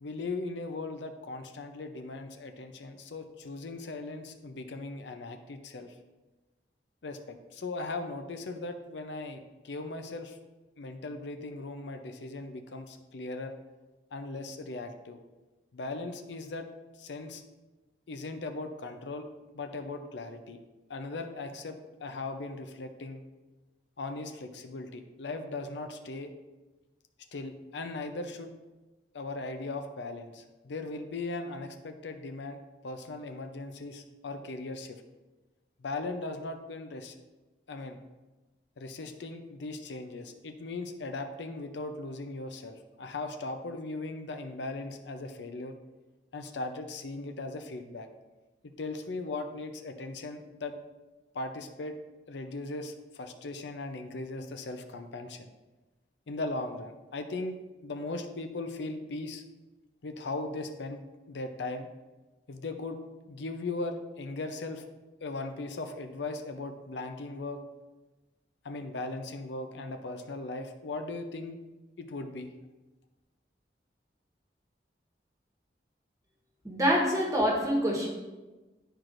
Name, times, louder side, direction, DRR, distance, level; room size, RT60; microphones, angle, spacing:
voice 1, 0.0-5.9 7.0-10.4 10.8-13.5 14.1-15.2 15.7-16.7 17.0-17.4 18.1-19.3 19.5-20.6 20.9-23.2 24.0-26.3 27.3-28.5 29.1-35.0 35.8-37.1 37.7-38.0 38.8-45.8 46.3-48.1 48.6-50.7 51.3-52.0 52.3-55.5 56.3-57.6 57.8-59.4 60.0-61.0 61.3-61.9 62.5-63.0 63.3-64.8 65.2-67.6 68.6-71.6 72.0-72.5, left 2 dB, 85° left, 7 dB, 0.6 m, -38 dB
voice 2, 76.6-78.1, equal, 20° right, -2 dB, 1.2 m, -26 dB
10.5 x 4.6 x 2.5 m, 1.1 s
head